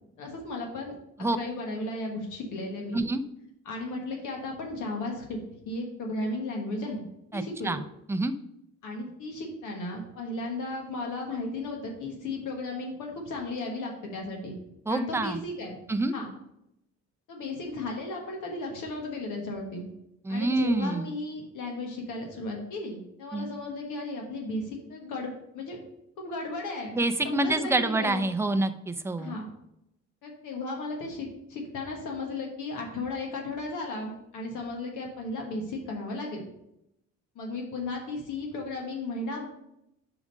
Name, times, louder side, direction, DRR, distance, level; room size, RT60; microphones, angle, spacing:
voice 1, 0.2-0.9 1.3-3.0 3.6-5.4 5.6-7.1 7.3-7.8 8.8-14.6 14.9-15.8 16.1-16.3 17.3-19.9 20.3-25.8 26.2-26.9 27.2-28.2 29.2-29.5 30.2-36.5 37.3-39.4, left 2 dB, 85° left, 1 dB, 1.4 m, -35 dB
voice 2, 7.3-7.8 8.1-8.3 14.9-15.4 15.9-16.1 20.2-21.1 23.3-23.5 26.9-29.4, right 2 dB, 10° right, 8 dB, 0.5 m, -27 dB
5.0 x 4.9 x 5.3 m, 0.81 s
cardioid pair, 90°, 30 cm